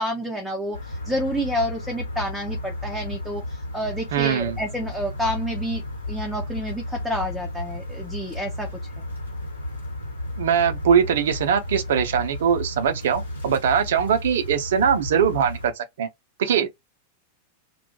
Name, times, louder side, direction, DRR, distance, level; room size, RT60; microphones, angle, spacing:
voice 1, 0.0-5.8 6.1-8.7 9.0-9.1, equal, ahead, 0.5 m, -29 dB
sound 1, 0.7-15.7, left 1 dB, 80° left, 1.1 m, -33 dB
voice 2, 4.1-4.6 10.4-16.1 16.4-16.7, right 8 dB, 60° right, 0.4 m, -21 dB
2.2 x 2.1 x 2.7 m
figure-of-eight pair, 90°, 0 cm